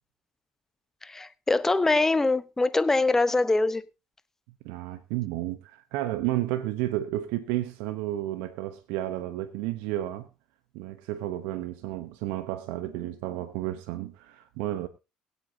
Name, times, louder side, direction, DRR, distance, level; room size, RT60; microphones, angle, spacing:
voice 1, 1.1-3.8, left 3 dB, 15° left, 1.0 m, -23 dB
voice 2, 4.6-10.3 10.7-14.9, right 14 dB, 80° right, 1.0 m, -32 dB
21.5 x 8.4 x 2.8 m
supercardioid pair, 70°, 2 cm